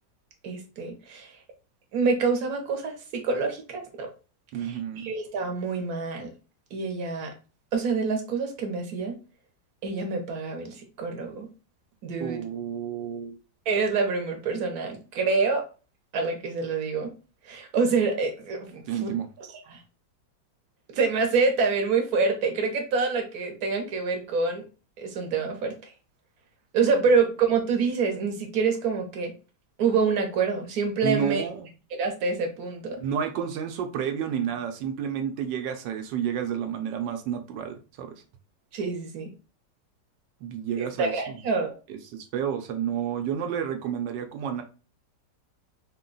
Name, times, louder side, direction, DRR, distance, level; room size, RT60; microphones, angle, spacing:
voice 1, 0.4-1.4 1.9-4.1 4.6-6.3 6.7-7.3 7.7-9.2 9.8-11.5 12.0-12.4 13.7-15.6 16.1-17.1 17.4-19.1 19.4-19.8 20.9-24.6 25.0-25.9 26.7-29.3 29.8-31.4 31.9-33.0 38.7-39.3 40.8-41.7, right 4 dB, 60° right, 1.3 m, -26 dB
voice 2, 4.5-5.1 12.2-13.3 18.9-19.3 31.0-31.7 33.0-38.1 40.4-41.4 41.9-44.6, right 8 dB, 80° right, 1.3 m, -30 dB
3.8 x 2.3 x 3.8 m
omnidirectional pair, 1.9 m